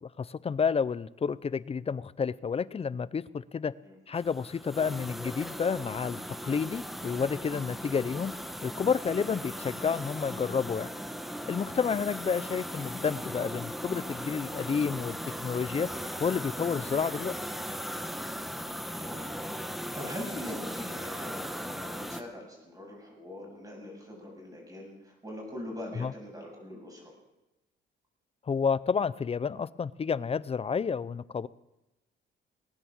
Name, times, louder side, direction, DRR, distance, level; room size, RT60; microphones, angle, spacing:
voice 1, 0.0-3.7 4.1-8.3 8.6-10.9 11.5-15.9 16.2-17.3 26.0-26.1 28.5-31.5, left 6 dB, 30° left, 19 dB, 0.6 m, -30 dB
sound 1, 4.1-22.2, equal, ahead, 1.2 m, -38 dB
voice 2, 18.4-27.1, left 1 dB, 20° right, 0 dB, 7.9 m, -43 dB
19.5 x 9.9 x 7.4 m, 0.96 s
cardioid pair, 90°, 20 cm